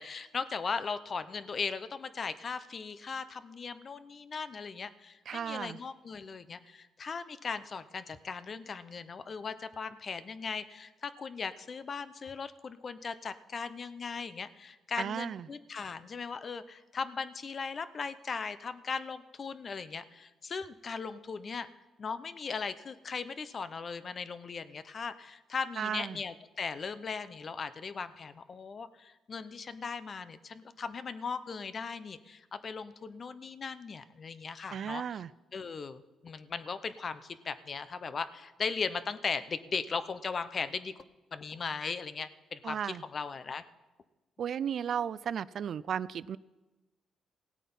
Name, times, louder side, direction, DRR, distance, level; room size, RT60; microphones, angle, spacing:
voice 1, 0.0-21.7 22.0-35.2 35.5-40.9 41.3-43.6, left 5 dB, 45° left, 13 dB, 0.7 m, -38 dB
voice 2, 5.3-5.8 15.0-15.5 25.8-26.2 34.7-35.3 42.6-43.0 44.4-46.4, right 8 dB, 60° right, 19 dB, 0.3 m, -34 dB
17.0 x 8.3 x 5.5 m, 1.1 s
cardioid pair, 90°, 0 cm